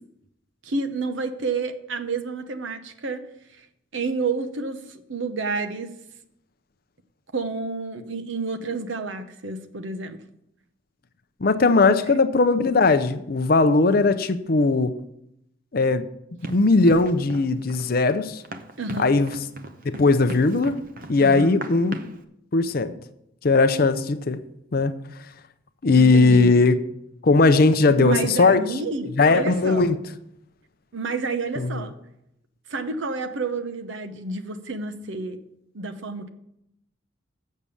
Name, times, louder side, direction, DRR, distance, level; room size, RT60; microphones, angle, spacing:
voice 1, 0.6-3.2 3.9-5.9 7.3-10.2 12.0-12.2 18.8-19.1 21.2-21.6 26.0-26.6 28.0-29.9 30.9-31.9 32.7-35.4 35.7-36.3, right 3 dB, 70° right, 0.9 m, -29 dB
voice 2, 11.4-14.9 15.7-16.0 16.5-18.4 19.0-19.4 19.8-20.8 21.1-22.0 22.5-22.9 23.4-24.4 24.7-24.9 25.8-26.7 27.2-28.6 29.2-30.0 31.6-31.9, left 3 dB, 50° left, 0.5 m, -19 dB
Run, 16.4-22.2, right 1 dB, 45° right, 0.7 m, -39 dB
7.4 x 6.7 x 7.0 m
head